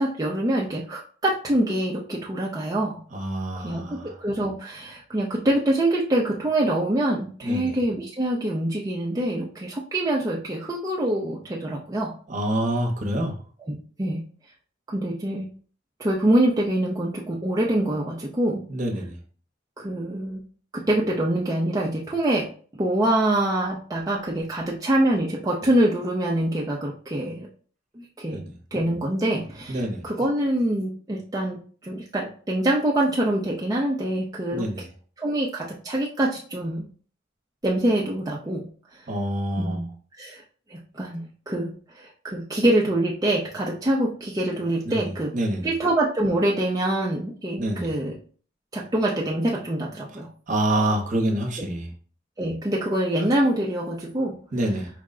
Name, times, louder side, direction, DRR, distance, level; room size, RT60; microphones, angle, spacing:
voice 1, 0.0-3.0 3.6-12.1 14.0-14.2 14.9-15.5 16.0-18.6 19.8-20.4 20.7-22.5 22.7-27.5 28.0-28.4 28.7-34.7 35.2-36.8 37.6-38.7 39.6-40.4 40.7-45.3 45.6-48.2 48.7-50.3 52.4-54.4, right 1 dB, 20° right, -4 dB, 0.5 m, -25 dB
voice 2, 3.1-4.1 7.4-7.7 12.3-13.3 18.7-19.2 28.3-28.5 29.7-30.0 34.5-34.8 39.1-39.8 44.8-45.7 47.6-47.9 50.5-51.9 54.5-54.9, right 1 dB, 40° right, 1 dB, 0.9 m, -27 dB
4.8 x 2.1 x 3.7 m, 0.42 s
head